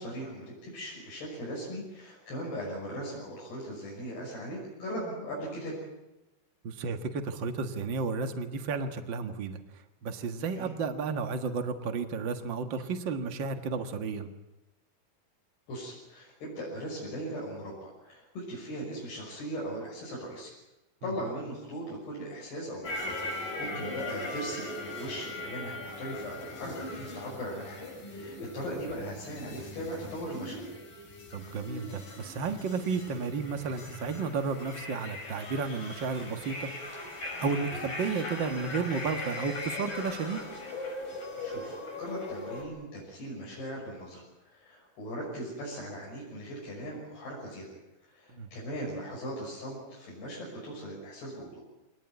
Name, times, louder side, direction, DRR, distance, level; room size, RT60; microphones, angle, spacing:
voice 1, 0.0-5.8 10.6-10.7 15.7-20.5 21.0-30.6 38.2-38.3 41.4-47.8 48.0-51.6, equal, 75° left, -4 dB, 8.2 m, -39 dB
voice 2, 6.6-9.6 10.0-14.3 21.0-21.1 23.7-23.9 31.3-37.1 37.4-40.4 48.3-48.5, right 4 dB, 65° right, 7 dB, 1.1 m, -33 dB
sound 1, 22.8-42.6, left 2 dB, 55° left, 7.0 m, -39 dB
25.0 x 19.0 x 9.7 m, 0.99 s
omnidirectional pair, 4.8 m